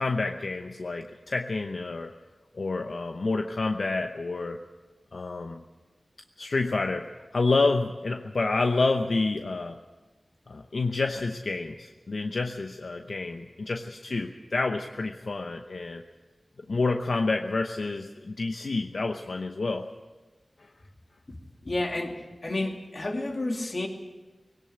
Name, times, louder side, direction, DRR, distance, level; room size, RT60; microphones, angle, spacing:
voice 1, 0.0-2.1 2.5-4.6 5.1-5.6 6.4-9.8 10.5-16.0 16.7-19.9, left 3 dB, 80° left, 5 dB, 0.9 m, -28 dB
voice 2, 21.6-23.9, left 2 dB, 55° left, 2 dB, 2.7 m, -31 dB
20.5 x 18.0 x 8.0 m, 1.3 s
wide cardioid pair, 55°, 0 cm